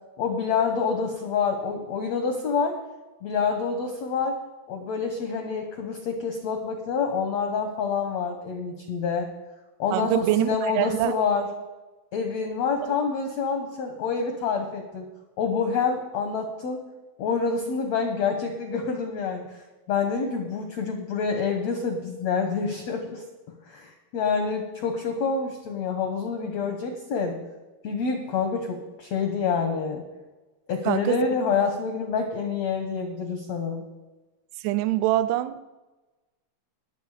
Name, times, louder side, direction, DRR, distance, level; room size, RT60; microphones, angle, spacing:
voice 1, 0.2-2.8 3.2-4.4 4.7-9.3 9.8-11.4 12.1-15.0 15.4-16.8 17.2-19.4 19.9-23.2 23.7-27.4 27.8-30.0 30.7-33.8, left 5 dB, 80° left, 1.5 m, -27 dB
voice 2, 9.9-11.2 12.8-12.9 30.9-31.2 34.6-35.6, right 15 dB, 85° right, 2.6 m, -24 dB
20.5 x 7.1 x 4.9 m
omnidirectional pair, 4.7 m